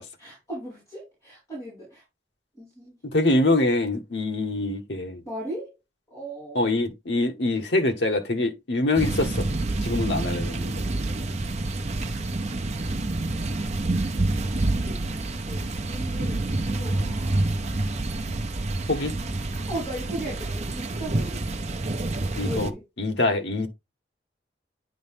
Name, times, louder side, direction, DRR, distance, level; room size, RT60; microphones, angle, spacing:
voice 1, 0.2-2.0 2.6-3.0 5.2-5.7 6.1-6.7 14.4-17.4 18.9-19.1 19.5-21.4 22.4-22.8, right 1 dB, 20° left, 4.8 m, -38 dB
voice 2, 3.0-5.2 6.5-9.5 9.8-10.8 18.9-19.1 22.3-22.7 23.0-23.7, left 2 dB, 80° left, 1.3 m, -24 dB
sound 1, 8.9-22.7, right 2 dB, 40° right, 0.7 m, -28 dB
9.7 x 3.9 x 3.5 m
head